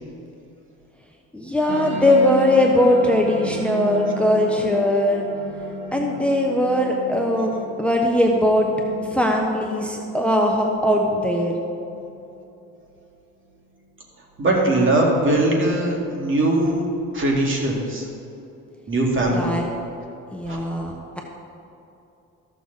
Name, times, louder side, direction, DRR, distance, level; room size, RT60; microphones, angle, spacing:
voice 1, 1.3-5.3 5.9-7.5 7.8-8.7 9.1-11.5 19.3-19.7 20.3-21.2, left 1 dB, 5° left, 1 dB, 0.9 m, -20 dB
sound 1, 1.7-12.7, equal, 65° right, 1.6 m, -34 dB
voice 2, 14.4-16.8 17.1-18.1 18.9-19.5 20.5-20.6, right 1 dB, 40° right, -2 dB, 2.3 m, -20 dB
14.0 x 6.7 x 4.0 m, 2.8 s
cardioid pair, 90°, 30 cm